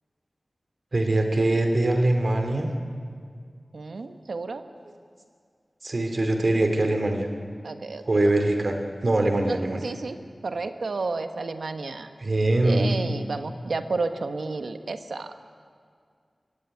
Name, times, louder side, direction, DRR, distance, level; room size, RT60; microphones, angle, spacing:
voice 1, 0.9-2.7 5.8-7.3 8.1-8.8 9.0-9.8 12.2-13.0, right 2 dB, 55° right, 5 dB, 2.7 m, -22 dB
voice 2, 3.7-4.6 7.6-8.3 9.5-10.2 10.4-12.1 12.6-15.3, right 3 dB, 85° right, 8 dB, 1.3 m, -31 dB
25.0 x 15.5 x 9.6 m, 2.1 s
wide cardioid pair, 60°, 0 cm